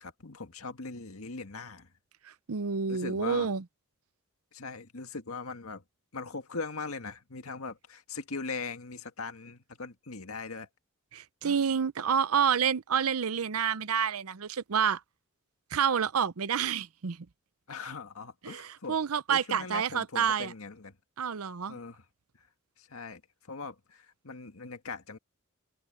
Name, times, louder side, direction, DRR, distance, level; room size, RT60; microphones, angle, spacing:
voice 1, 0.0-1.9 2.9-3.5 4.5-5.8 6.1-10.7 11.4-11.6 17.7-19.0 19.3-20.9 21.7-22.0 22.8-23.2 23.5-25.2, left 4 dB, 75° left, 1.9 m, -40 dB
voice 2, 2.2-3.6 11.1-15.0 15.7-17.3 18.4-20.5 21.2-21.8, right 7 dB, 80° right, 0.7 m, -29 dB
head